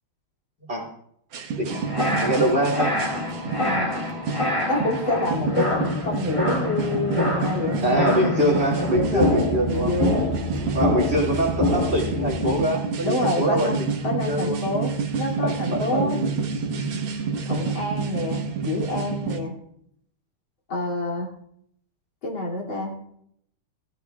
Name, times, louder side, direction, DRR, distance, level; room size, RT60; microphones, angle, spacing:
sound 1, 1.3-19.4, right 5 dB, 75° right, 2.1 m, -29 dB
voice 1, 1.6-3.0 7.8-9.9 10.7-14.6 15.4-16.5, right 1 dB, 30° right, 0 dB, 2.9 m, -24 dB
sound 2, 1.7-12.6, left 2 dB, 15° left, 2.4 m, -26 dB
voice 2, 3.6-3.9 4.7-8.6 8.9-10.2 13.0-16.2 17.4-19.6 20.7-21.3 22.2-22.9, left 2 dB, 65° left, -1 dB, 3.5 m, -28 dB
21.0 x 14.0 x 2.4 m, 0.72 s
omnidirectional pair, 2.3 m